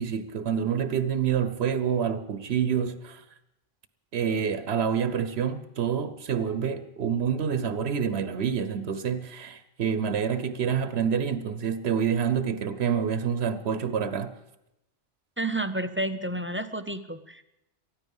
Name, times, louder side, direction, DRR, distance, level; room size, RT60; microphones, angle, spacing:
voice 1, 0.0-3.2 4.1-14.3, right 7 dB, 80° right, 1.1 m, -27 dB
voice 2, 15.4-17.4, right 1 dB, 15° right, 0.5 m, -30 dB
19.0 x 13.5 x 5.5 m
omnidirectional pair, 1.1 m